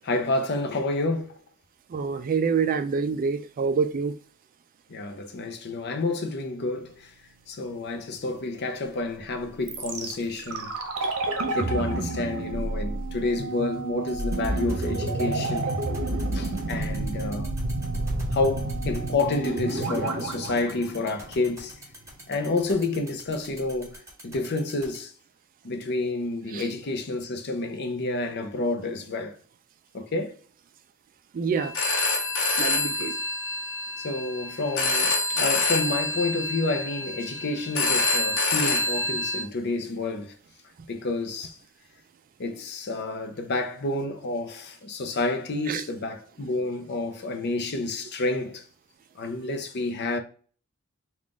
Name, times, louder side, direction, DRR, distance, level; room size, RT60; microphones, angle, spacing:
voice 1, 0.0-1.4 4.9-7.1 7.5-10.7 11.5-15.7 16.3-17.5 18.3-21.8 22.3-24.0 24.2-25.1 25.6-29.4 29.9-30.4 34.0-40.3 40.9-41.5 42.4-48.6 49.2-50.2, left 2 dB, 50° left, 0.6 m, -29 dB
voice 2, 1.9-4.1 11.0-11.1 26.5-26.6 31.3-31.7 32.6-33.1 45.7-45.8, right 5 dB, 40° right, 0.3 m, -26 dB
sound 1, 9.7-21.7 21.9-22.0, right 2 dB, 70° right, 0.8 m, -30 dB
sound 2, 14.1-25.0, right 1 dB, 15° right, 1.6 m, -45 dB
Telephone, 31.6-39.4, left 3 dB, 80° left, 0.9 m, -26 dB
3.8 x 2.4 x 3.6 m
head